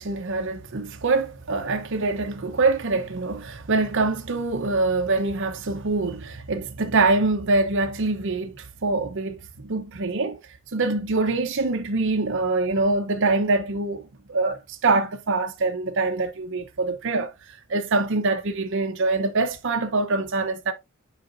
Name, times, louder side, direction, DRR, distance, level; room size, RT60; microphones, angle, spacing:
voice 1, 0.0-10.4 10.7-14.0 14.3-20.7, right 3 dB, 60° right, 0.8 m, -24 dB
7.8 x 5.0 x 2.6 m
head